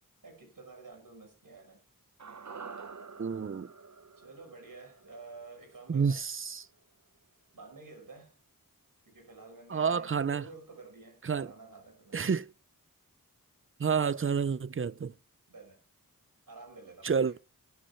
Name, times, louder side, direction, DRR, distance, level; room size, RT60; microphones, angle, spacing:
voice 1, 0.2-1.8 4.2-6.2 7.5-8.4 9.0-12.3 15.5-15.8 16.5-17.3, right 3 dB, 70° right, 5.9 m, -50 dB
sound 1, 2.2-6.5 6.8-6.9, right 5 dB, 55° right, 1.0 m, -48 dB
voice 2, 3.2-3.7 5.9-6.7 9.7-10.4 11.2-11.5 12.1-12.5 13.8-15.1 17.0-17.4, right 6 dB, 40° right, 0.5 m, -29 dB
11.0 x 8.6 x 5.5 m
wide cardioid pair, 50°, 34 cm